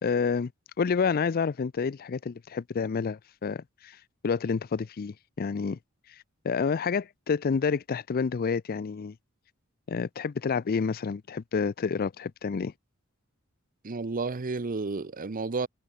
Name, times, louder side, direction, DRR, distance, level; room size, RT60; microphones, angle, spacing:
voice 1, 0.0-0.5 0.8-5.8 6.1-9.2 9.9-12.7, left 5 dB, 45° left, 0.4 m, -29 dB
voice 2, 13.8-15.7, right 3 dB, 40° right, 0.7 m, -31 dB
head